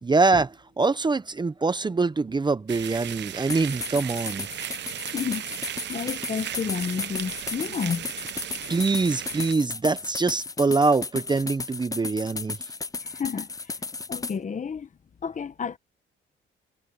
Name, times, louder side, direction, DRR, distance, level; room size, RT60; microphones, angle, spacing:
voice 1, 0.0-4.5 8.7-12.6, right 3 dB, 20° right, 0.8 m, -24 dB
sound 1, 2.7-9.5, right 11 dB, 60° right, 0.9 m, -36 dB
sound 2, 3.5-14.4, left 4 dB, 15° left, 0.5 m, -35 dB
voice 2, 5.1-5.5 5.9-8.1 13.0-13.5 14.1-14.9 15.2-15.8, left 6 dB, 40° left, 1.2 m, -30 dB
cardioid pair, 90°, 20 cm